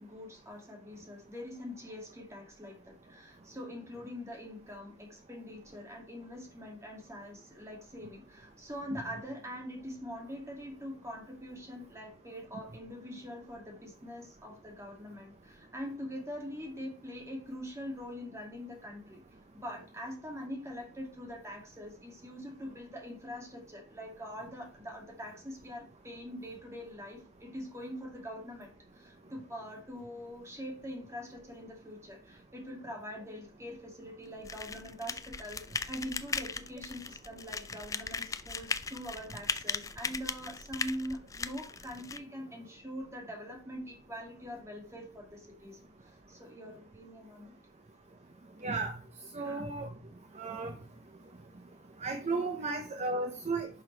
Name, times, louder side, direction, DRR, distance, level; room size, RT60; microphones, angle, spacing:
voice 1, 0.0-19.2 19.5-45.8 46.3-47.5 49.4-49.6, equal, 15° right, 0 dB, 2.4 m, -43 dB
sound 1, 34.4-42.2, left 4 dB, 15° left, 0.3 m, -38 dB
voice 2, 48.6-48.9 49.3-49.9 50.4-50.7 52.0-53.7, right 3 dB, 30° right, 6 dB, 0.7 m, -34 dB
10.5 x 5.5 x 3.3 m, 0.41 s
head